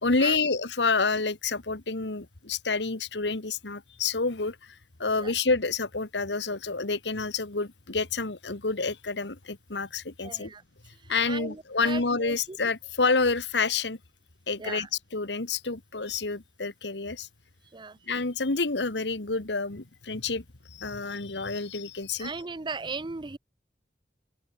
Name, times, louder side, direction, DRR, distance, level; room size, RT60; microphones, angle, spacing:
voice 1, 0.0-10.5 11.1-14.0 14.5-17.3 18.1-22.3, left 4 dB, 80° left, 1.7 m, -28 dB
voice 2, 10.2-10.6 11.3-12.6 14.6-14.9 17.7-18.0 22.2-23.4, right 4 dB, 25° right, 0.6 m, -37 dB
open air
head